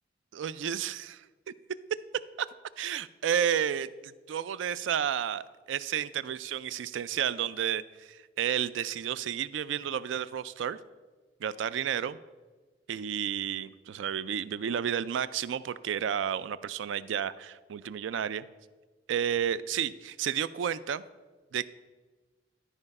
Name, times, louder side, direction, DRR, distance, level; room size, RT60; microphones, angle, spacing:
voice 1, 0.3-1.1 2.4-2.5 2.8-10.8 11.4-12.2 12.9-18.4 19.1-21.0 21.5-21.7, right 9 dB, 90° right, 17 dB, 0.3 m, -31 dB
12.0 x 4.9 x 5.3 m, 1.3 s
head